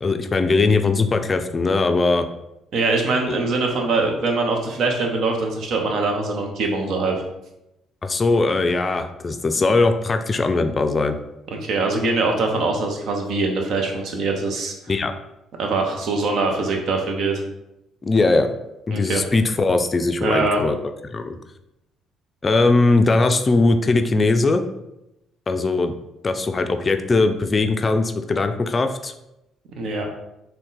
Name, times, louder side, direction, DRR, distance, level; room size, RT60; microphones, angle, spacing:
voice 1, 0.0-2.3 3.3-3.4 8.0-11.2 14.9-15.1 18.0-18.5 18.9-20.8 21.1-21.4 22.4-24.6 25.5-26.0 26.2-29.1, left 3 dB, 35° left, 7 dB, 0.3 m, -20 dB
voice 2, 2.7-7.2 11.5-14.7 15.6-17.4 18.9-19.2 20.2-20.6 29.8-30.0, right 3 dB, 60° right, 2 dB, 0.7 m, -23 dB
3.7 x 2.2 x 3.8 m, 0.89 s
hypercardioid pair, 50°, 0 cm